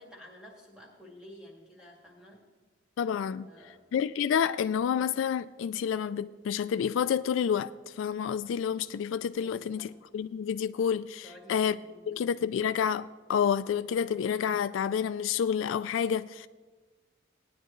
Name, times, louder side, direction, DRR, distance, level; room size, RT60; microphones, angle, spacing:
voice 1, 0.0-2.4 3.4-3.8 9.4-9.9 11.2-12.3, equal, 5° right, 2.1 m, -52 dB
voice 2, 3.0-3.5 3.9-11.8 12.1-16.5, left 7 dB, 80° left, 0.3 m, -29 dB
18.0 x 10.0 x 3.1 m
head